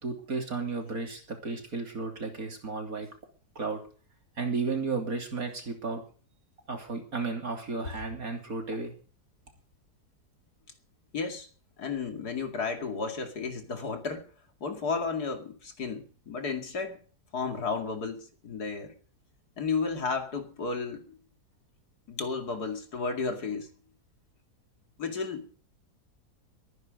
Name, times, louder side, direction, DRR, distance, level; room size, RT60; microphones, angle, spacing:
voice 1, 0.0-3.1 3.6-3.8 4.4-6.0 6.7-9.0, right 4 dB, 60° right, 3.4 m, -33 dB
voice 2, 11.1-11.5 11.8-14.2 14.6-17.0 17.3-18.9 19.6-21.2 22.1-23.7 25.0-25.5, left 4 dB, 70° left, 2.9 m, -33 dB
22.5 x 9.8 x 5.2 m
omnidirectional pair, 1.7 m